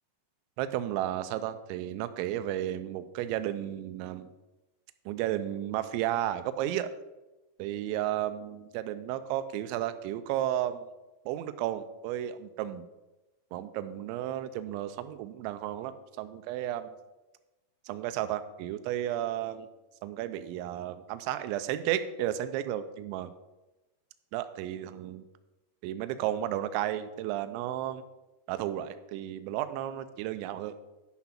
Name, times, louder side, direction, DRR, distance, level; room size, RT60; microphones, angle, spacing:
voice 1, 0.6-4.3 5.1-6.9 7.6-10.9 11.3-12.8 13.5-16.9 17.9-19.7 20.0-23.3 24.3-25.2 25.8-28.0 28.5-30.8, right 12 dB, 80° right, 11 dB, 2.9 m, -33 dB
10.5 x 6.0 x 5.8 m, 1.1 s
omnidirectional pair, 5.4 m